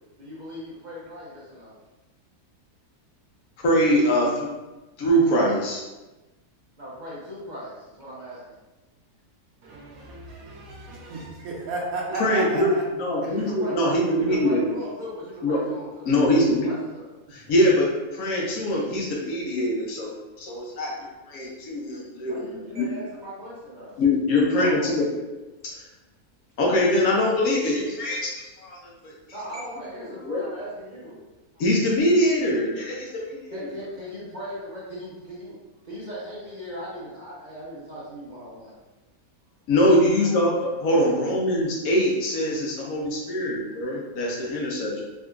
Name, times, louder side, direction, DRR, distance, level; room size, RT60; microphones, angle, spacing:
voice 1, 0.2-1.7 6.8-8.5 13.2-13.7 14.1-16.1 16.6-17.1 22.3-23.9 24.3-25.2 29.3-31.2 31.5-31.6 33.5-35.6 35.8-38.7 40.2-40.3 43.7-43.8, equal, 45° right, -8 dB, 0.6 m, -38 dB
voice 2, 3.6-4.5 5.0-5.8 12.1-14.6 15.4-15.6 16.1-16.7 17.3-20.1 20.4-20.9 21.3-22.9 24.0-25.0 25.7-25.8 26.6-28.3 28.6-28.8 29.0-29.1 30.3-30.4 31.6-33.4 39.7-45.0, left 1 dB, 70° left, -3 dB, 1.1 m, -23 dB
voice 3, 9.6-12.8, right 2 dB, 65° right, -2 dB, 1.1 m, -33 dB
3.7 x 2.6 x 2.3 m, 1.1 s
omnidirectional pair, 1.8 m